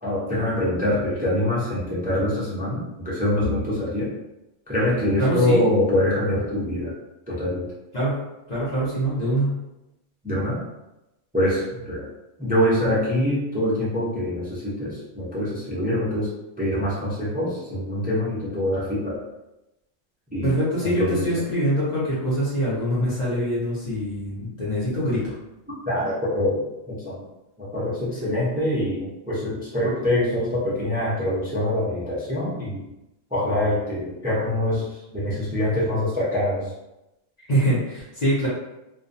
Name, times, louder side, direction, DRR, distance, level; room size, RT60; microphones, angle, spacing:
voice 1, 0.0-4.1 4.7-6.9 7.3-7.7 10.2-10.6 11.3-12.1 12.4-19.2 20.3-20.5 20.8-21.3 25.9-27.2 27.6-32.8 33.3-36.7, left 1 dB, 15° right, -8 dB, 0.3 m, -24 dB
voice 2, 5.2-5.6 7.9-8.2 8.5-9.5 20.4-25.3 37.5-38.5, equal, 40° left, -9 dB, 0.7 m, -24 dB
2.4 x 2.2 x 2.6 m, 0.94 s
omnidirectional pair, 1.4 m